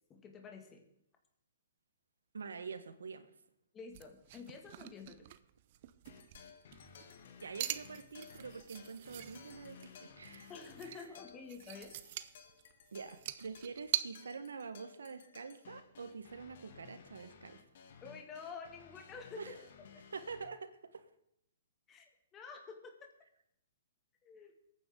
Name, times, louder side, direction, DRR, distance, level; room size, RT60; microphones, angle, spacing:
voice 1, 0.1-0.8 3.7-5.3 10.5-11.9 12.2-12.3 18.0-19.6 21.9-23.1 24.2-24.5, left 5 dB, 20° left, 2 dB, 2.2 m, -49 dB
voice 2, 2.3-3.3 7.4-10.5 10.9-11.0 12.9-17.6 19.4-19.6 20.1-21.1, right 5 dB, 90° right, 11 dB, 1.4 m, -46 dB
sound 1, 3.9-14.0, right 14 dB, 50° right, 0.7 m, -44 dB
sound 2, 6.1-20.5, left 6 dB, 65° left, 1.8 m, -57 dB
22.0 x 9.4 x 3.9 m, 0.75 s
hypercardioid pair, 135°, 0 cm